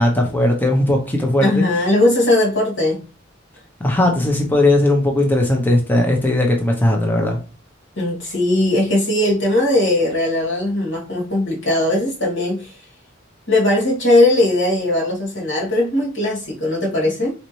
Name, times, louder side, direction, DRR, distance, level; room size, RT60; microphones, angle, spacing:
voice 1, 0.0-1.6 3.8-7.4, left 1 dB, 10° left, 0.8 m, -17 dB
voice 2, 1.4-3.0 8.0-12.8 13.5-17.3, left 1 dB, 80° left, 2.4 m, -18 dB
4.2 x 4.0 x 3.1 m
head